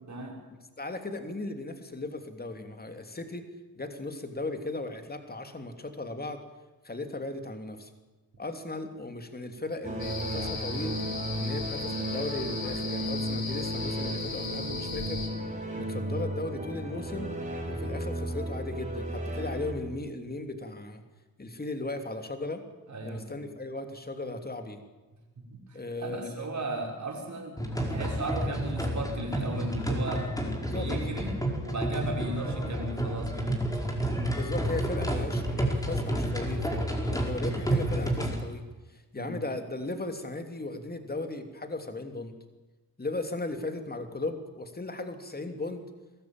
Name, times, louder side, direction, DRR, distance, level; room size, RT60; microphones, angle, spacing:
voice 1, 0.8-3.5 3.8-6.4 6.8-7.9 8.4-11.0 11.4-15.2 15.7-17.3 17.7-21.0 21.4-22.6 23.0-24.8 25.7-26.6 30.7-30.9 34.3-42.3 43.0-45.8, left 2 dB, 25° left, 6 dB, 3.0 m, -37 dB
sound 1, 9.8-19.7, right 1 dB, 20° right, 5.5 m, -34 dB
sound 2, 10.0-15.3, left 4 dB, 75° left, 4.0 m, -37 dB
voice 2, 22.9-23.3 25.4-27.6 27.9-30.3 30.6-31.4 31.6-33.6 39.2-39.4, right 2 dB, 50° right, 0 dB, 5.9 m, -36 dB
sound 3, 27.6-38.4, right 1 dB, 10° left, 4.8 m, -30 dB
22.0 x 14.0 x 9.0 m, 1.2 s
cardioid pair, 60°, 36 cm